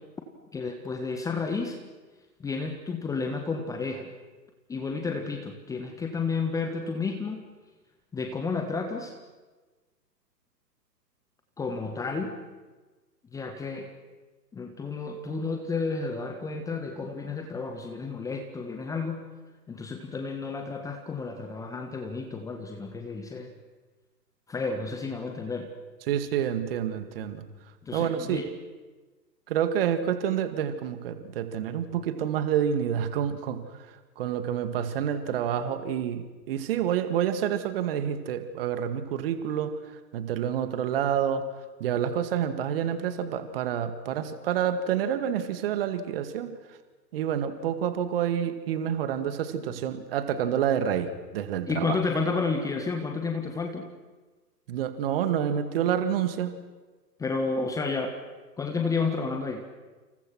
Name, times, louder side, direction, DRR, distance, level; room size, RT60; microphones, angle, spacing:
voice 1, 0.5-1.8 2.4-4.1 4.7-7.4 8.1-9.1 11.6-12.3 13.3-13.9 14.5-19.2 19.7-23.5 24.5-25.7 27.8-28.5 51.7-53.9 57.2-58.2 58.6-59.6, left 4 dB, 5° left, 4 dB, 1.4 m, -31 dB
voice 2, 26.1-27.5 27.9-28.4 29.5-41.5 41.8-46.8 47.1-52.0 54.7-56.6, right 9 dB, 35° right, 10 dB, 2.2 m, -28 dB
29.5 x 27.5 x 6.2 m, 1.3 s
figure-of-eight pair, 125°, 50 cm